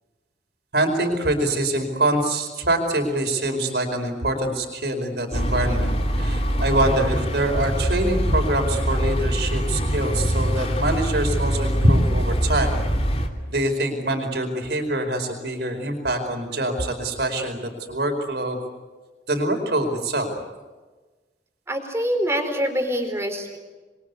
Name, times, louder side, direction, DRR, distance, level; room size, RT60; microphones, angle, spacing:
voice 1, 0.7-5.9 6.2-12.7 13.5-17.6 17.9-18.6 19.3-20.3, right 1 dB, 65° right, 5 dB, 4.9 m, -24 dB
sound 1, 5.3-13.3, equal, 35° left, 3.0 m, -24 dB
voice 2, 21.7-23.6, equal, 15° right, 5 dB, 4.3 m, -25 dB
28.5 x 23.0 x 8.4 m, 1.3 s
head